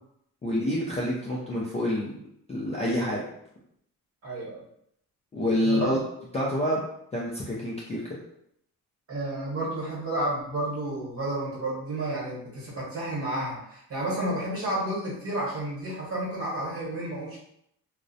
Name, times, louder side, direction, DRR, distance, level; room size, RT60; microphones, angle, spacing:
voice 1, 0.4-2.2 2.5-3.2 5.3-6.0 6.3-6.8 7.1-8.0, left 1 dB, 20° left, -6 dB, 0.3 m, -27 dB
voice 2, 4.2-4.6 5.6-5.9 9.1-17.4, right 1 dB, 40° right, -5 dB, 1.0 m, -31 dB
2.4 x 2.1 x 2.6 m, 0.74 s
cardioid pair, 135°, 37 cm